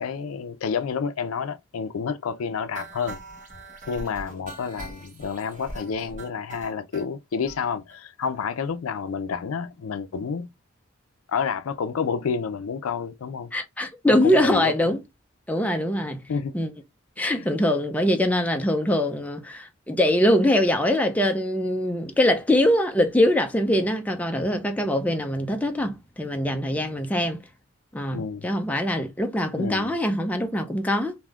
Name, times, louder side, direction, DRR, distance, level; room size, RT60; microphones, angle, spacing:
voice 1, 0.0-3.2 3.9-10.5 11.3-13.5 14.2-14.7 16.3-16.5 17.3-17.5 28.1-28.5 29.6-29.9, left 6 dB, 85° left, 0.4 m, -29 dB
sound 1, 2.7-7.0 7.5-7.6 7.9-8.3 8.7-8.8, right 2 dB, 35° right, 1.0 m, -41 dB
voice 2, 13.5-15.0 15.5-16.2 16.5-16.7 17.2-27.4 27.9-31.2, left 1 dB, 5° left, 0.4 m, -23 dB
3.4 x 2.6 x 2.3 m
head